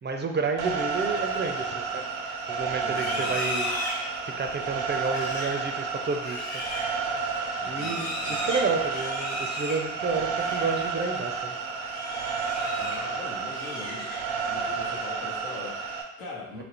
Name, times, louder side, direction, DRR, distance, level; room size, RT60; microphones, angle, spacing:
voice 1, 0.0-3.7 4.2-6.5 7.7-11.5 16.6-16.7, right 4 dB, 30° right, 4 dB, 0.4 m, -31 dB
sound 1, 0.6-16.0, right 5 dB, 85° right, 0.5 m, -31 dB
voice 2, 2.8-3.4 7.6-8.6 12.8-14.1 14.5-16.6, left 3 dB, 85° left, -3 dB, 0.9 m, -42 dB
Livestock farm animals working animals, 2.8-10.8 11.1-11.4 11.8-13.1 13.4-14.5, left 2 dB, 45° left, 1.0 m, -37 dB
3.0 x 2.5 x 2.9 m, 0.87 s
supercardioid pair, 55°, 36 cm